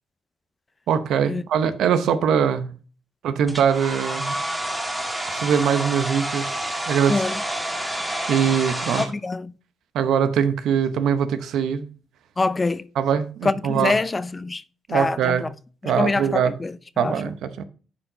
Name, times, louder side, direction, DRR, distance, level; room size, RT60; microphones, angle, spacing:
voice 1, 0.9-2.7 3.2-4.4 5.3-6.6 6.9-7.3 8.3-9.1 9.9-11.9 12.9-14.0 14.9-15.5 15.8-16.6 17.0-17.6, right 8 dB, 75° right, 0.8 m, -22 dB
Domestic sounds home sounds, 3.5-9.1, right 1 dB, 10° right, 1.8 m, -28 dB
voice 2, 9.0-9.5 12.4-12.8 13.4-14.6 14.9-15.5 15.8-16.7 17.0-17.1, left 3 dB, 25° left, 0.5 m, -24 dB
10.0 x 4.6 x 3.9 m
cardioid pair, 90°, 0 cm